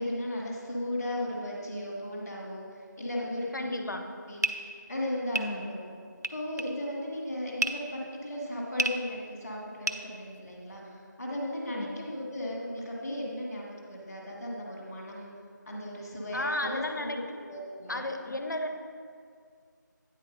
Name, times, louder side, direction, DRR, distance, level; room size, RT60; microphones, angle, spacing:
voice 1, 0.0-5.9 6.3-15.3 15.7-18.0 18.3-18.4, left 1 dB, 5° left, -13 dB, 0.7 m, -36 dB
voice 2, 3.5-4.0 5.4-5.7 11.7-11.9 16.3-17.2 17.9-18.8, left 1 dB, 70° left, 6 dB, 0.8 m, -33 dB
sound 1, 4.0-10.8, right 2 dB, 55° right, 0.4 m, -34 dB
9.0 x 4.3 x 5.4 m, 2.1 s
figure-of-eight pair, 175°, 11 cm